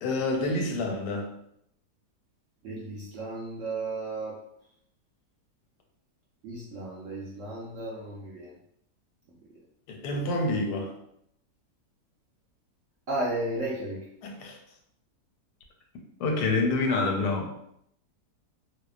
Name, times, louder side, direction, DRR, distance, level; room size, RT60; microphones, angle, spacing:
voice 1, 0.0-1.3 9.9-10.9 14.2-14.6 16.2-17.7, left 2 dB, 85° left, 2 dB, 1.1 m, -28 dB
voice 2, 2.6-4.4 6.4-8.5 13.1-14.0, right 2 dB, 70° right, -5 dB, 0.8 m, -34 dB
2.7 x 2.0 x 2.3 m, 0.74 s
omnidirectional pair, 1.7 m